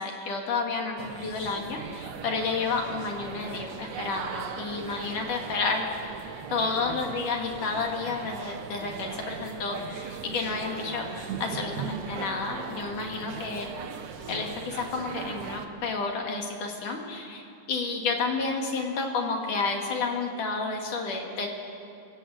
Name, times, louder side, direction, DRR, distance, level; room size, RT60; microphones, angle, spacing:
voice 1, 0.0-5.9 6.5-13.7 14.3-21.5, left 4 dB, 55° left, 1 dB, 3.6 m, -31 dB
sound 1, 1.0-15.7, right 6 dB, 60° right, 2.1 m, -39 dB
27.0 x 17.5 x 8.0 m, 2.8 s
omnidirectional pair, 4.6 m